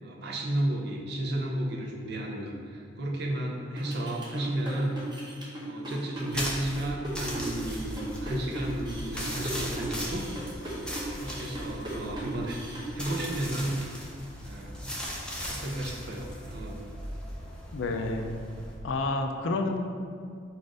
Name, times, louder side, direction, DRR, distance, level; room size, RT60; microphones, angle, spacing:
voice 1, 0.0-5.0 5.6-10.2 11.2-12.6 12.9-13.8 14.4-15.0 15.5-16.8, right 1 dB, 65° right, 0 dB, 0.6 m, -33 dB
sound 1, 3.8-13.3, right 1 dB, 25° right, 0.8 m, -38 dB
sound 2, 6.3-18.8, equal, 5° left, 0.6 m, -38 dB
voice 2, 17.7-18.3 18.8-19.8, left 2 dB, 90° left, 5 dB, 0.4 m, -29 dB
4.2 x 2.5 x 4.8 m, 2.2 s
head